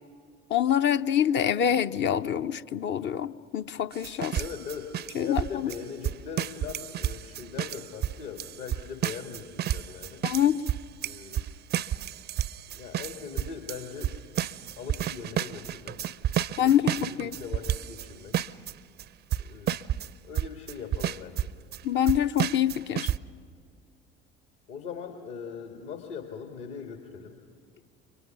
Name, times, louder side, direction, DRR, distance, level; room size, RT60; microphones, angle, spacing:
voice 1, 0.5-4.4 5.1-5.7 10.2-10.6 16.6-17.3 21.8-23.1, left 10 dB, 35° left, 12 dB, 0.7 m, -25 dB
sound 1, 3.9-18.1 18.3-18.7 19.0-19.1 19.3-20.1 20.4-21.8 22.1-23.2, right 11 dB, 30° right, 0.5 m, -31 dB
voice 2, 4.3-4.9 5.2-10.2 11.0-11.4 12.7-14.1 14.8-16.1 16.6-18.4 19.4-19.7 20.2-21.5 24.7-27.4, left 6 dB, 55° left, 4 dB, 2.2 m, -40 dB
30.0 x 24.0 x 6.0 m, 2.3 s
figure-of-eight pair, 65°, 34 cm